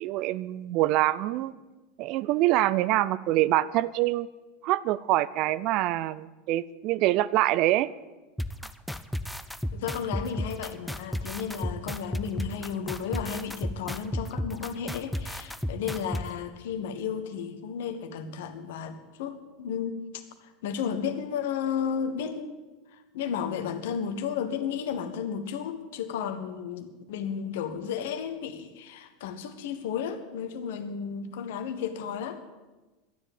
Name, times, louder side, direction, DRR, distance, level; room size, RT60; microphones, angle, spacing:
voice 1, 0.0-1.5 2.0-4.3 4.6-7.9, right 15 dB, 50° right, 18 dB, 0.5 m, -25 dB
sound 1, 8.4-16.2, left 1 dB, ahead, 0.7 m, -32 dB
voice 2, 9.7-20.0 20.4-22.6 22.9-32.4, left 7 dB, 60° left, 9 dB, 1.4 m, -33 dB
12.5 x 10.0 x 8.9 m, 1.2 s
figure-of-eight pair, 80°, 0 cm